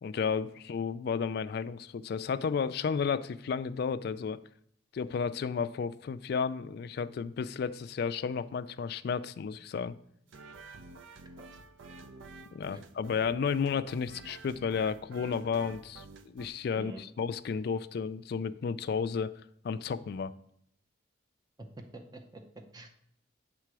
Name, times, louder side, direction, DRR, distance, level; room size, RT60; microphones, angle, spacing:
voice 1, 0.0-4.4 4.9-9.9 12.5-19.3 19.6-20.3, left 6 dB, 55° left, 0.3 m, -32 dB
sound 1, 10.3-16.5, right 3 dB, 85° right, 0.5 m, -50 dB
voice 2, 21.6-22.9, right 2 dB, 20° right, 0.6 m, -47 dB
7.6 x 3.8 x 4.7 m
head